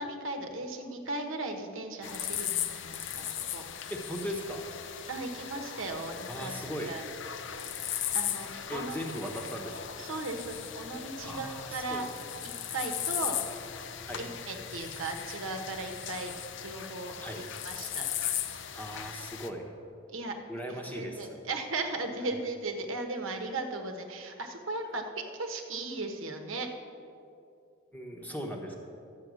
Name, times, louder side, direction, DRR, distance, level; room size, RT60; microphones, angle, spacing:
voice 1, 0.0-3.7 5.1-6.5 6.8-7.1 8.1-9.0 10.0-12.1 12.4-13.3 14.2-16.3 16.6-18.1 20.1-20.3 20.9-26.7, right 2 dB, 65° right, 5 dB, 1.1 m, -37 dB
sound 1, 2.0-19.5, left 10 dB, 55° left, 0.6 m, -37 dB
voice 2, 3.9-4.6 6.3-7.0 8.7-9.9 11.2-12.1 14.1-14.3 17.2-17.5 18.7-19.6 20.5-21.3 27.9-28.7, equal, 10° left, 1 dB, 1.1 m, -38 dB
12.5 x 8.1 x 6.2 m, 2.6 s
head